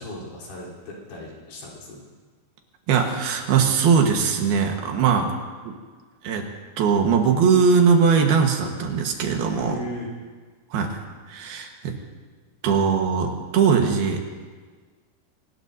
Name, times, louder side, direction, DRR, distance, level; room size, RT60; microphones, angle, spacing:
voice 1, 0.0-2.0 9.6-10.1, left 1 dB, 80° left, -4 dB, 5.8 m, -37 dB
voice 2, 2.9-5.3 5.6-5.7 6.2-6.5 6.8-9.8 10.7-11.0 11.3-11.9 12.6-14.2, right 6 dB, 75° right, 3 dB, 3.2 m, -20 dB
25.0 x 19.0 x 2.7 m, 1.5 s
omnidirectional pair, 4.6 m